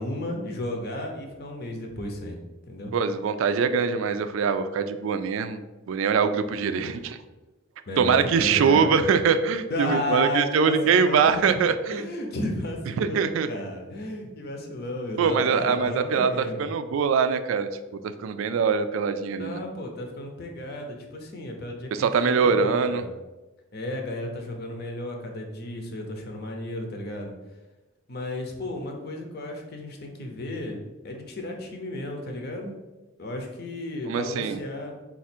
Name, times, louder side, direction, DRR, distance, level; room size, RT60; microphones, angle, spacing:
voice 1, 0.0-2.4 2.7-2.9 6.5-7.0 7.9-9.1 9.7-16.6 19.4-23.1 23.7-27.3 28.1-32.7 33.2-34.9, left 1 dB, 50° left, 3 dB, 0.7 m, -33 dB
voice 2, 2.9-7.2 8.0-12.1 13.0-13.5 15.2-17.7 18.2-19.7 21.9-23.0 34.1-34.6, right 6 dB, 70° right, 11 dB, 0.3 m, -23 dB
4.0 x 2.5 x 4.3 m, 1.1 s
head